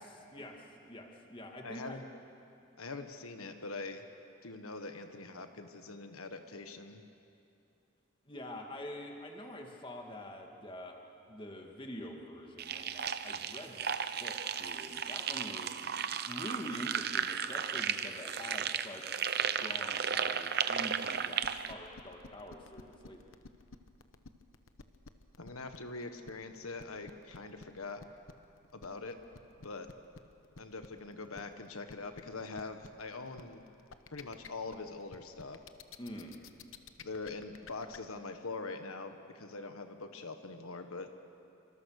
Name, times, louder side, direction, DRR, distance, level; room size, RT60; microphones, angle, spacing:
voice 1, 0.0-2.0 2.6-2.7 8.3-11.0 11.3-15.8 16.2-23.3 36.0-36.4, equal, 25° left, 2 dB, 2.2 m, -46 dB
voice 2, 1.6-2.0 2.8-4.0 4.4-7.0 25.4-28.0 28.7-29.2 29.6-29.9 30.6-33.6 34.1-35.6 37.0-41.1, left 3 dB, 85° left, 7 dB, 1.4 m, -43 dB
sound 1, 12.6-21.7, right 8 dB, 50° right, 0.8 m, -35 dB
sound 2, 21.4-38.0, left 4 dB, 70° left, 1.1 m, -51 dB
28.0 x 25.5 x 6.6 m, 2.7 s
head